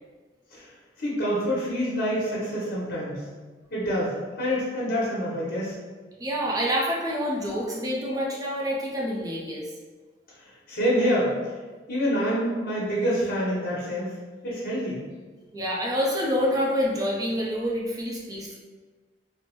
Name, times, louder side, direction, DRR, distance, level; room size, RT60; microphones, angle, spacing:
voice 1, 1.0-3.2 3.7-5.8 10.7-11.3 11.9-14.1 14.4-15.0, equal, 55° left, -6 dB, 1.2 m, -26 dB
voice 2, 6.2-9.6 15.5-18.6, equal, 20° right, -4 dB, 0.6 m, -27 dB
4.2 x 2.1 x 3.1 m, 1.4 s
head